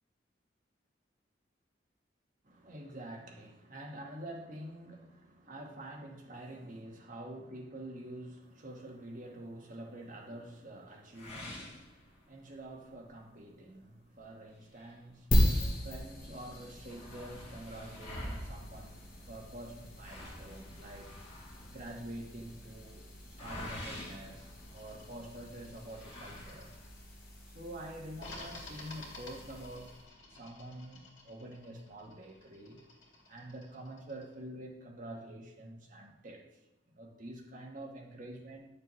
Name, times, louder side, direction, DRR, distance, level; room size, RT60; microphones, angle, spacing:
voice 1, 2.4-15.5 15.8-21.1 21.7-23.1 23.4-26.7 27.5-29.9 30.3-32.8 33.3-38.7, right 1 dB, 45° right, 0 dB, 1.2 m, -47 dB
sound 1, 11.1-12.6 13.0-13.1 13.6-13.7 14.5-15.8 16.1-16.2 16.5-25.2 25.9-27.0, left 1 dB, 30° left, 1.7 m, -47 dB
sound 2, 15.3-30.0, equal, 45° left, 1.8 m, -37 dB
sound 3, 24.7-27.3 28.2-34.3, left 2 dB, 80° left, 2.1 m, -53 dB
10.5 x 6.7 x 3.1 m, 0.94 s
head